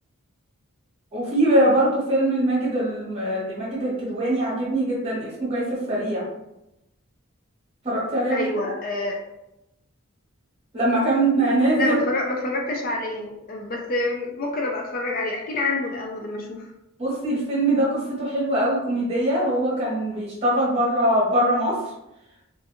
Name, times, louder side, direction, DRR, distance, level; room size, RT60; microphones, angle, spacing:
voice 1, 1.1-6.2 7.8-8.7 10.7-12.0 17.0-21.8, right 1 dB, 30° right, -6 dB, 1.1 m, -22 dB
voice 2, 8.3-9.2 11.7-16.7, left 2 dB, 45° left, 0 dB, 0.4 m, -27 dB
2.5 x 2.5 x 2.6 m, 0.88 s
head